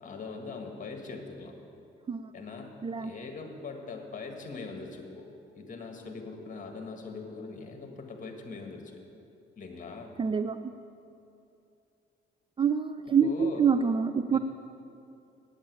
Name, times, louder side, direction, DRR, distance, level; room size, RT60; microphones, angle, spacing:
voice 1, 0.0-1.5 2.3-5.3 5.6-8.9 9.6-10.1 13.1-13.7 14.3-14.4, left 4 dB, 40° left, 4 dB, 1.8 m, -41 dB
voice 2, 10.2-10.7 12.6-14.4, right 6 dB, 25° right, 11 dB, 0.4 m, -26 dB
8.7 x 8.6 x 8.2 m, 2.6 s
cardioid pair, 90°, 20 cm